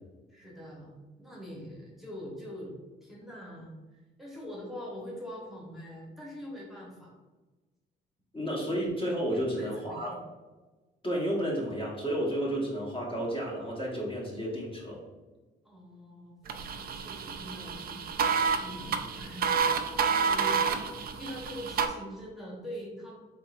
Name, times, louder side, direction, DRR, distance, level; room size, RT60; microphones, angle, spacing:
voice 1, 0.3-2.7 3.0-3.7 4.2-7.1 9.3-10.2 15.6-18.9 19.2-19.6 20.1-23.2, equal, ahead, -4 dB, 1.2 m, -43 dB
voice 2, 8.3-10.2 11.0-15.0, equal, 25° left, -4 dB, 1.2 m, -31 dB
sound 1, 16.5-21.9, right 6 dB, 50° right, 0.4 m, -29 dB
3.8 x 3.6 x 2.5 m, 1.2 s
cardioid pair, 90°, 20 cm